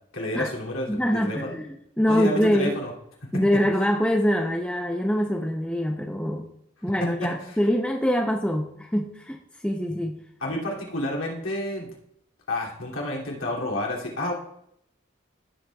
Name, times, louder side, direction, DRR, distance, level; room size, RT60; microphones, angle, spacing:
voice 1, 0.1-1.5 2.1-2.9 10.4-11.9 12.5-14.3, left 1 dB, 85° left, -2 dB, 2.6 m, -29 dB
voice 2, 0.9-2.8 3.3-6.5 6.8-9.4 9.6-10.2, equal, 5° left, 1 dB, 0.6 m, -24 dB
15.5 x 7.5 x 2.3 m, 0.74 s
head